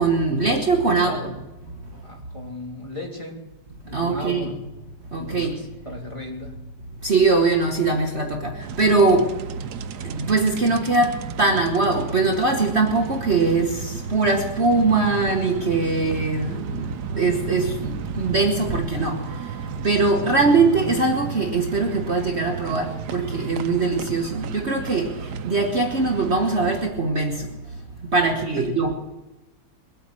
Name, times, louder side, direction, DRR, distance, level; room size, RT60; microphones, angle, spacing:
voice 1, 0.0-1.1 1.9-2.0 3.9-4.5 5.1-5.6 7.0-9.4 10.0-27.8 28.1-28.9, right 3 dB, 40° right, 3 dB, 1.5 m, -22 dB
voice 2, 0.9-1.4 2.0-3.4 3.8-4.6 5.2-6.5 28.6-28.7, left 1 dB, 20° left, -1 dB, 3.2 m, -36 dB
sound 1, 8.6-26.9, right 7 dB, 75° right, 1.3 m, -34 dB
21.5 x 8.5 x 7.6 m, 1.0 s
omnidirectional pair, 1.8 m